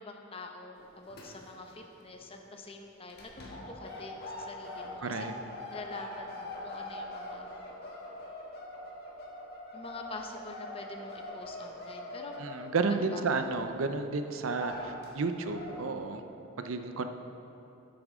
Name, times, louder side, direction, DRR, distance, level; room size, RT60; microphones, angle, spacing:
voice 1, 0.0-5.3 5.7-7.5 9.7-12.3 12.9-13.4 14.5-14.7, left 2 dB, 25° left, 3 dB, 0.8 m, -45 dB
sound 1, 0.8-1.7 2.0-2.2 3.1-13.6 14.0-14.1 14.4-15.1 15.4-15.8, left 1 dB, 50° left, 1.5 m, -43 dB
voice 2, 5.0-5.3 12.4-16.2 16.6-17.1, right 4 dB, 75° right, 8 dB, 0.6 m, -32 dB
13.0 x 8.6 x 3.7 m, 3.0 s
head